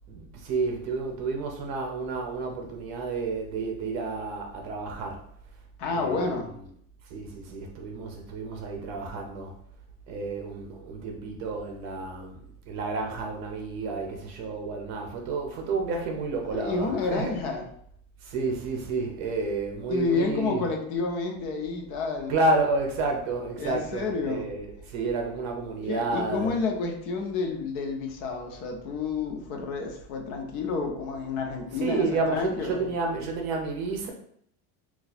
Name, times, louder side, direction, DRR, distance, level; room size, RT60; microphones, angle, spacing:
voice 1, 0.1-5.2 5.9-6.5 7.1-9.5 10.1-17.4 18.2-20.6 22.3-26.6 31.7-34.1, right 3 dB, 45° right, 0.7 m, -30 dB
voice 2, 5.8-6.5 16.5-17.6 19.9-22.3 23.6-24.5 25.9-32.8, left 4 dB, 65° left, 0.8 m, -30 dB
2.7 x 2.4 x 4.0 m
cardioid pair, 180°, 38 cm